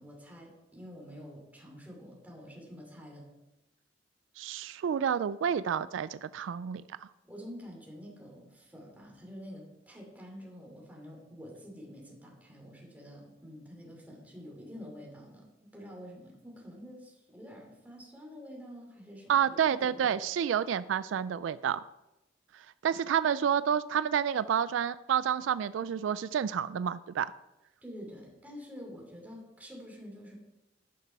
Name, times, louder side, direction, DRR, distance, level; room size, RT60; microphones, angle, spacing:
voice 1, 0.0-3.3 7.3-20.1 27.8-30.4, equal, 10° right, -2 dB, 2.7 m, -48 dB
voice 2, 4.4-6.8 19.3-21.8 22.5-27.3, right 8 dB, 80° right, 16 dB, 0.3 m, -29 dB
10.5 x 6.0 x 5.5 m, 0.96 s
head